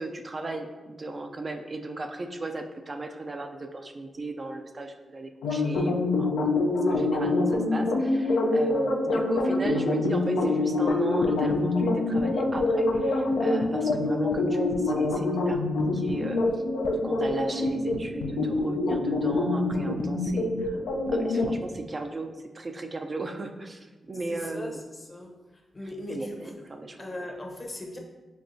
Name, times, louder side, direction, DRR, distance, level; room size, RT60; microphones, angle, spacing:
voice 1, 0.0-6.4 6.9-16.6 17.0-20.8 21.1-24.8 26.1-27.0, right 2 dB, 40° right, 5 dB, 0.3 m, -36 dB
sound 1, 5.4-21.6, left 2 dB, 90° left, 0.3 m, -25 dB
voice 2, 24.3-24.7 25.1-25.3 25.7-26.4 27.0-28.0, left 1 dB, 35° left, 2 dB, 0.7 m, -38 dB
5.2 x 2.3 x 2.6 m, 1.2 s
supercardioid pair, 45°, 0 cm